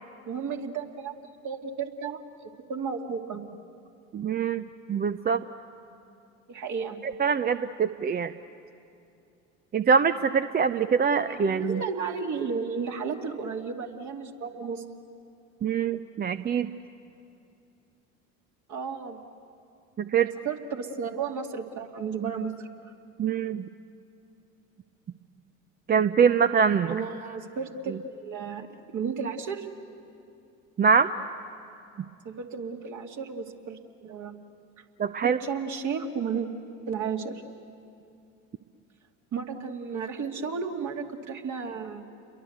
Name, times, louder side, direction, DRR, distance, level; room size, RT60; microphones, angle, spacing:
voice 1, 0.3-1.2 1.4-3.4 6.5-7.0 11.2-14.8 18.7-19.2 20.2-22.9 26.9-29.7 32.2-34.4 34.8-34.9 35.2-36.5 36.9-37.4 39.3-42.0, right 6 dB, 45° right, 3 dB, 2.5 m, -33 dB
voice 2, 4.1-5.4 7.2-8.3 9.7-11.8 15.6-16.7 20.0-20.3 23.2-23.7 25.9-26.9 30.8-31.1 35.0-35.4, right 6 dB, 25° right, 11 dB, 0.6 m, -24 dB
29.5 x 22.5 x 8.0 m, 2.6 s
hypercardioid pair, 70°, 40 cm